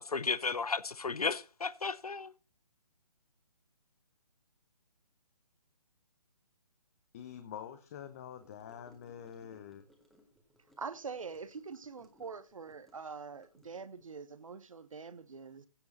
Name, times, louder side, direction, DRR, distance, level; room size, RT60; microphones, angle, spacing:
voice 1, 0.0-2.3, left 4 dB, 70° left, 0.8 m, -34 dB
voice 2, 7.1-9.8, left 9 dB, 25° left, 0.8 m, -46 dB
Gurgling / Car passing by / Sink (filling or washing), 8.4-14.1, left 1 dB, ahead, 1.7 m, -66 dB
voice 3, 10.8-15.7, right 5 dB, 55° right, 1.3 m, -44 dB
16.0 x 7.1 x 4.2 m
figure-of-eight pair, 140°, 20 cm